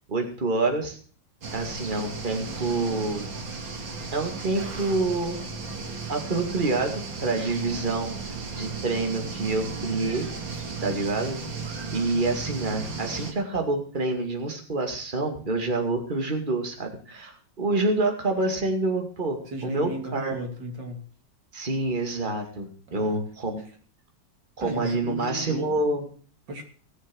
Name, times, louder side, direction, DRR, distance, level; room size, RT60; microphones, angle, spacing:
voice 1, 0.1-1.0 1.5-3.3 4.1-5.4 6.1-8.2 8.5-10.3 10.5-20.4 21.5-23.6 24.6-26.0, right 2 dB, 25° right, 4 dB, 2.4 m, -27 dB
sound 1, 1.4-13.3, right 4 dB, 90° right, 2.9 m, -35 dB
voice 2, 19.5-21.1 22.9-23.2 23.6-23.7 24.6-25.8 26.5-26.6, right 1 dB, 70° right, 2 dB, 3.7 m, -35 dB
18.5 x 7.3 x 6.2 m, 0.43 s
omnidirectional pair, 2.0 m